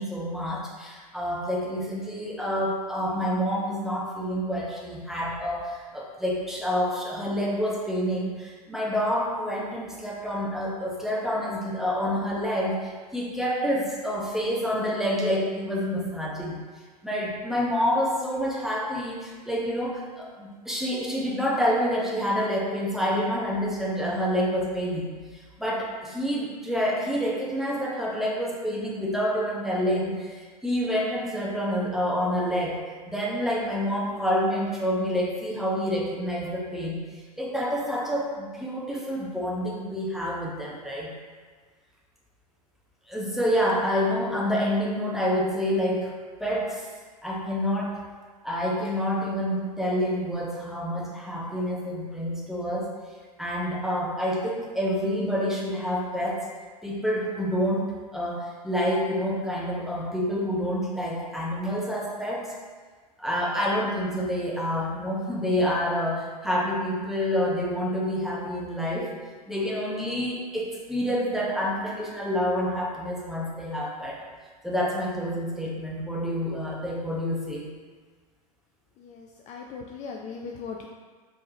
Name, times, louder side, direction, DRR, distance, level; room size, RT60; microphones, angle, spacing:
voice 1, 0.0-16.6 17.0-37.0 37.4-41.1 43.1-46.1 46.4-46.9 47.2-48.0 48.4-52.9 53.4-56.4 56.8-62.5 63.2-69.1 69.5-74.2 74.6-77.7, equal, ahead, -4 dB, 0.8 m, -28 dB
voice 2, 79.0-80.9, left 5 dB, 35° left, 1 dB, 0.4 m, -39 dB
4.5 x 3.2 x 2.7 m, 1.5 s
hypercardioid pair, 90°, 20 cm